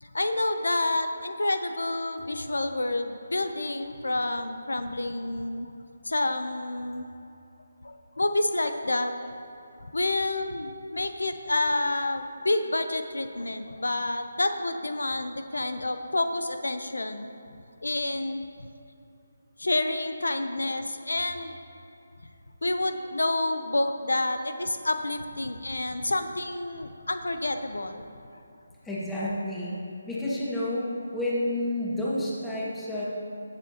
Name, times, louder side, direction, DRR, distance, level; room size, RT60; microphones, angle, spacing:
voice 1, 0.0-5.7 6.0-7.1 7.8-9.3 9.9-17.3 17.8-18.4 19.6-21.5 22.6-28.0, left 2 dB, 85° left, 8 dB, 0.6 m, -29 dB
voice 2, 28.8-29.8 30.1-33.0, left 1 dB, 5° left, -8 dB, 1.7 m, -31 dB
18.0 x 7.0 x 2.9 m, 2.8 s
figure-of-eight pair, 160°, 0 cm